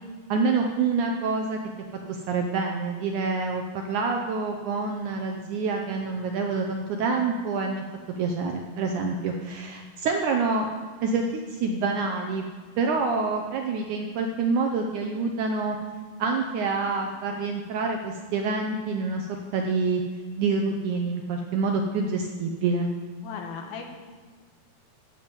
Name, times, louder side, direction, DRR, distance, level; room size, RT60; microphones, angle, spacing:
voice 1, 0.3-1.6 2.1-7.8 8.2-10.7 11.0-12.4 12.8-15.8 16.2-20.0 20.4-22.9, right 4 dB, 75° right, 3 dB, 1.8 m, -27 dB
voice 2, 23.2-23.8, left 6 dB, 80° left, 3 dB, 3.1 m, -36 dB
14.5 x 7.4 x 5.3 m, 1.5 s
omnidirectional pair, 4.3 m